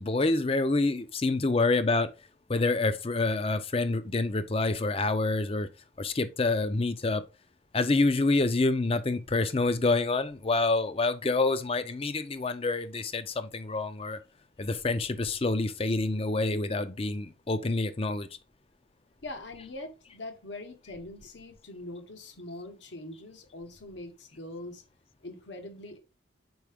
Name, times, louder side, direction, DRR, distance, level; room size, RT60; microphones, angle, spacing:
voice 1, 0.0-2.1 2.5-5.7 6.0-7.2 7.7-14.2 14.6-18.3, left 3 dB, 30° left, 0.5 m, -27 dB
voice 2, 19.2-24.8 25.2-26.0, left 2 dB, 65° left, 1.0 m, -42 dB
6.2 x 4.6 x 3.4 m
head